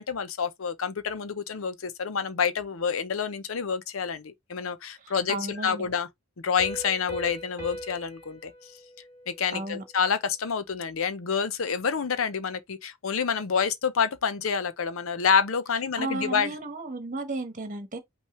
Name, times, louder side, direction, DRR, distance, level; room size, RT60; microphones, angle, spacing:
voice 1, 0.0-6.1 6.4-8.5 9.3-16.5, left 6 dB, 80° left, 0.7 m, -28 dB
voice 2, 5.0-5.9 9.5-9.8 16.0-18.0, right 2 dB, 40° right, 1.2 m, -34 dB
Piano, 6.6-10.0, equal, 10° right, 2.2 m, -41 dB
5.6 x 3.1 x 3.1 m
head